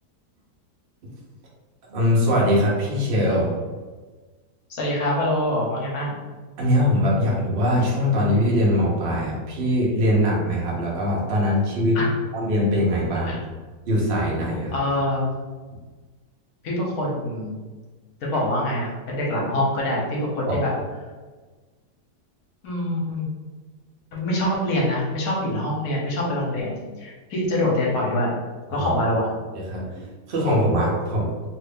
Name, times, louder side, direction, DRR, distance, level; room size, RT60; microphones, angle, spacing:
voice 1, 1.9-3.5 6.6-12.0 12.3-13.4 13.9-14.8 20.5-20.6 28.7-28.9 29.7-29.8 30.3-31.3, equal, 55° right, -4 dB, 0.6 m, -21 dB
voice 2, 4.7-6.2 11.9-12.1 13.2-13.4 14.7-15.3 16.6-17.7 18.2-20.7 22.6-23.3 24.1-28.3 28.7-29.3 29.9-30.0, left 1 dB, 65° left, -4 dB, 1.2 m, -25 dB
2.9 x 2.4 x 3.3 m, 1.3 s
omnidirectional pair, 1.8 m